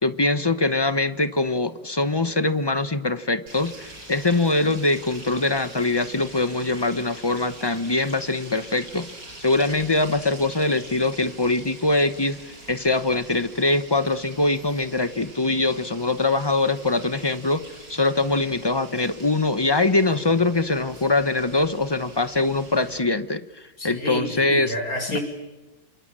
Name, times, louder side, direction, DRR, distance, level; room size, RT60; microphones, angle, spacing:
voice 1, 0.0-9.1 9.4-17.6 17.9-23.5 23.8-24.7 25.1-25.2, left 2 dB, 30° left, 12 dB, 0.5 m, -23 dB
sound 1, 3.5-23.0, right 1 dB, 75° right, 8.0 m, -44 dB
voice 2, 23.8-25.2, left 1 dB, 50° left, 4 dB, 6.0 m, -29 dB
28.5 x 27.5 x 7.5 m, 1.1 s
omnidirectional pair, 2.0 m